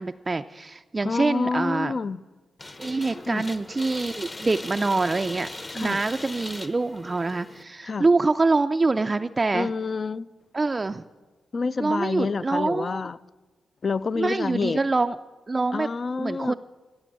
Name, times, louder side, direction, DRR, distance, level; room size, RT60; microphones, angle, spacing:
voice 1, 0.0-1.9 2.8-5.5 5.7-9.7 10.5-11.0 11.8-13.0 14.2-15.2 15.5-15.9 16.2-16.5, right 3 dB, 30° right, 0.3 m, -25 dB
voice 2, 1.0-2.2 3.3-3.4 5.7-6.0 7.8-8.0 9.5-10.3 11.5-13.2 13.8-14.8 15.7-16.5, left 4 dB, 45° left, 0.4 m, -28 dB
sound 1, 2.6-7.6, left 2 dB, 30° left, 0.9 m, -39 dB
14.5 x 7.7 x 7.4 m
cardioid pair, 90°, 0 cm